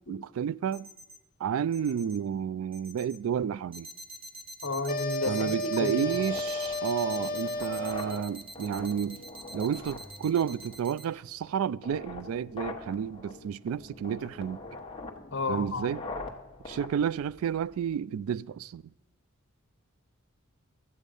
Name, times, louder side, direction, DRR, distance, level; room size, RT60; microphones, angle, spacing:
voice 1, 0.1-0.9 1.4-3.9 5.3-9.2 9.5-14.6 15.5-16.0 16.7-18.8, right 8 dB, 80° right, 0.3 m, -31 dB
sound 1, 0.7-1.2 1.7-2.2 2.7-3.2 3.7-11.1, right 1 dB, 25° right, 0.8 m, -45 dB
voice 2, 4.6-6.1 15.3-15.9, left 3 dB, 60° left, 1.3 m, -31 dB
sound 2, 4.9-8.4, left 1 dB, 45° left, 0.7 m, -33 dB
sound 3, 6.0-18.0, left 2 dB, 25° left, 1.1 m, -44 dB
13.0 x 8.2 x 5.3 m
head